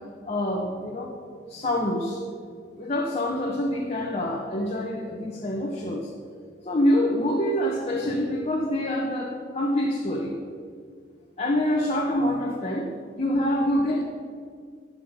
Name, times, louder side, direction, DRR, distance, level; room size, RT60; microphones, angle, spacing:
voice 1, 0.3-1.1 1.5-2.2 2.8-6.1 6.6-10.4 11.4-12.9 13.1-14.0, left 1 dB, 35° left, -2 dB, 1.1 m, -26 dB
12.0 x 7.6 x 5.2 m, 2.1 s
head